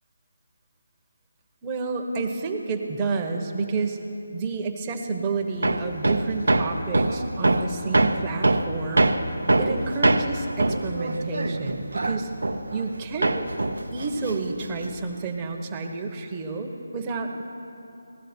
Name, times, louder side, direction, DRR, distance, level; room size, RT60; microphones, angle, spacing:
voice 1, 1.6-4.0 4.3-9.2 9.6-12.3 12.7-13.5 13.9-17.4, right 4 dB, 20° right, 2 dB, 1.0 m, -30 dB
Hammer, 5.6-13.0 13.2-15.0, right 2 dB, 85° right, 0.7 m, -23 dB
17.0 x 12.0 x 4.4 m, 2.8 s
figure-of-eight pair, 160°, 0 cm